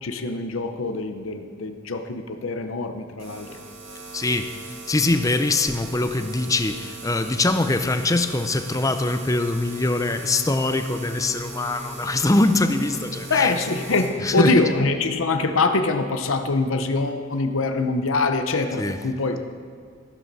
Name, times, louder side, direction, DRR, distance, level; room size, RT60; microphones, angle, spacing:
voice 1, 0.0-3.6 13.3-19.5, left 3 dB, 80° left, 7 dB, 0.8 m, -24 dB
sound 1, 3.2-14.1, right 3 dB, 75° right, 2.6 m, -40 dB
voice 2, 4.1-13.5 14.2-14.7 18.8-19.1, left 2 dB, 15° left, 9 dB, 0.5 m, -23 dB
sound 2, 9.6-14.8, left 1 dB, 40° right, 4.2 m, -39 dB
14.5 x 12.0 x 4.1 m, 2.1 s
head